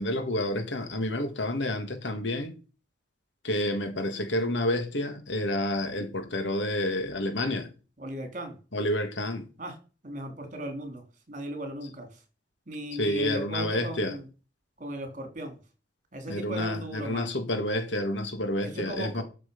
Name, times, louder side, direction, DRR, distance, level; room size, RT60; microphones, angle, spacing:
voice 1, 0.0-2.5 3.4-7.7 8.7-9.5 12.9-14.2 16.3-19.2, left 1 dB, 80° left, 2.2 m, -29 dB
voice 2, 8.0-8.6 9.6-9.8 10.0-12.1 12.7-14.3 14.8-15.6 16.1-17.4 18.6-19.2, right 1 dB, 45° right, 3.6 m, -37 dB
12.5 x 6.4 x 5.5 m
head